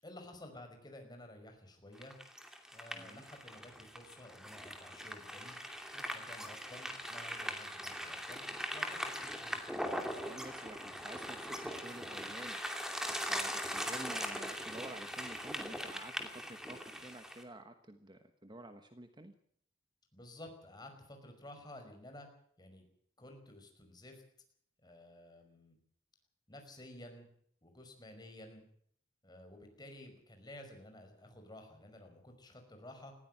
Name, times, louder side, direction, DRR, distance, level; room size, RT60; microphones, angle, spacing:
voice 1, 0.0-2.1 2.7-5.6 5.9-9.6 20.1-22.3 22.6-22.9 23.2-24.2 24.8-25.8 26.5-27.3 27.6-28.6 29.2-33.2, left 1 dB, 20° left, 4 dB, 5.4 m, -53 dB
sound 1, 2.0-17.4, equal, ahead, 2.6 m, -41 dB
voice 2, 2.9-3.2 10.1-12.6 13.3-19.3, right 1 dB, 20° right, 8 dB, 1.3 m, -50 dB
19.5 x 15.5 x 8.8 m, 0.63 s
head